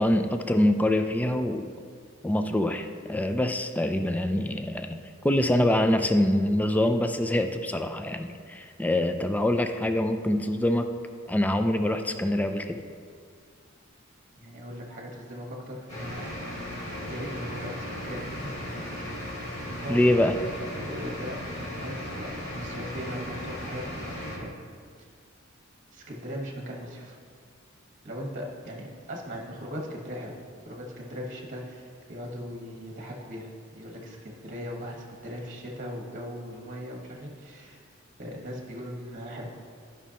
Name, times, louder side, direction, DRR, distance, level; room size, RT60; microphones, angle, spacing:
voice 1, 0.0-1.7 2.2-10.9 11.3-12.8 19.9-20.4, left 1 dB, 10° left, 7 dB, 0.3 m, -25 dB
voice 2, 14.4-16.2 17.1-19.2 19.8-20.2 20.5-21.4 21.8-24.5 25.0-25.1 25.9-27.2 28.0-30.3 30.7-37.8 38.2-39.5, equal, 40° right, -1 dB, 1.3 m, -39 dB
sound 1, 15.9-24.4, left 1 dB, 35° left, 2.1 m, -36 dB
14.5 x 5.4 x 2.9 m, 2.1 s
head